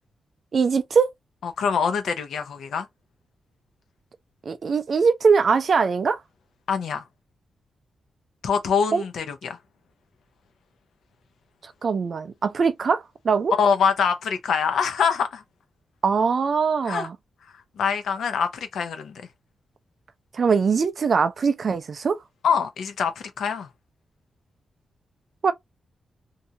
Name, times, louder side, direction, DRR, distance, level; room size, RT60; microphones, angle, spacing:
voice 1, 0.5-1.1 4.5-6.2 8.9-9.0 11.6-13.5 16.0-17.2 20.3-22.2 25.4-25.5, right 5 dB, 40° right, 0.4 m, -22 dB
voice 2, 1.4-2.9 6.7-7.0 8.4-9.6 13.6-15.4 16.9-17.1 17.8-19.2 22.4-23.7, left 6 dB, 80° left, 0.6 m, -24 dB
2.7 x 2.3 x 2.7 m
wide cardioid pair, 180°, 0 cm